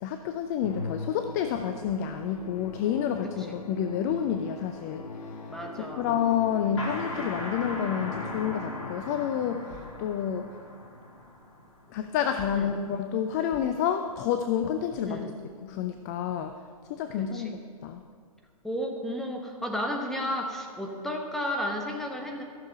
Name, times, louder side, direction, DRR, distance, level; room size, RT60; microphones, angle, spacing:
voice 1, 0.0-5.0 5.8-10.5 11.9-15.3 15.6-16.6 16.9-18.0, left 8 dB, 25° left, 8 dB, 0.4 m, -29 dB
Musical instrument, 0.6-9.2, left 3 dB, 90° left, 0.8 m, -41 dB
voice 2, 5.5-6.1 12.5-12.7 15.1-15.3 17.2-17.5 18.6-22.4, equal, ahead, 2 dB, 1.1 m, -33 dB
sound 1, 6.8-12.2, left 1 dB, 50° left, 3.1 m, -39 dB
14.0 x 6.6 x 5.8 m, 2.2 s
figure-of-eight pair, 120°, 20 cm